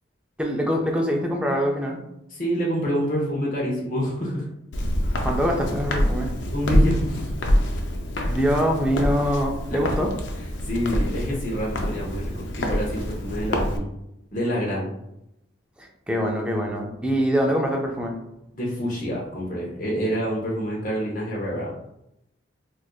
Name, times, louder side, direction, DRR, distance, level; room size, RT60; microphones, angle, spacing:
voice 1, 0.4-2.0 5.2-6.3 8.3-10.1 15.8-18.2, equal, 5° right, 0 dB, 0.4 m, -24 dB
voice 2, 2.3-4.4 6.5-7.3 10.6-13.9 14.3-14.9 18.5-21.8, equal, 40° left, -4 dB, 0.8 m, -27 dB
Walk footsteps, 4.7-13.8, equal, 70° left, 0.5 m, -26 dB
4.3 x 2.4 x 2.3 m, 0.83 s
head